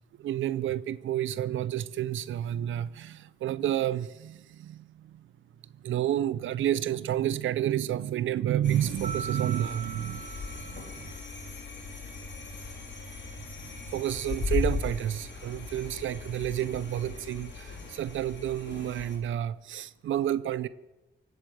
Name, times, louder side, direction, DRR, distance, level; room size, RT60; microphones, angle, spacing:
voice 1, 0.2-5.2 5.8-10.3 10.6-11.1 13.9-20.7, right 11 dB, 85° right, 0.5 m, -30 dB
sound 1, 8.6-19.2, left 4 dB, 70° left, 4.0 m, -38 dB
Mallet percussion, 9.0-11.4, right 6 dB, 35° right, 1.1 m, -41 dB
17.5 x 8.6 x 7.8 m
cardioid pair, 65°, 20 cm